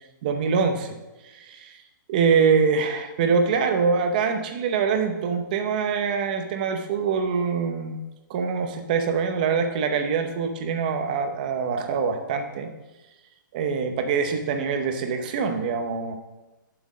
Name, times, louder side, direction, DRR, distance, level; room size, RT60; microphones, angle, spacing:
voice 1, 0.2-1.0 1.2-1.8 2.1-8.0 8.3-12.7 13.5-16.2, right 5 dB, 25° right, 6 dB, 0.8 m, -24 dB
7.6 x 6.0 x 7.3 m, 1.1 s
hypercardioid pair, 180°, 11 cm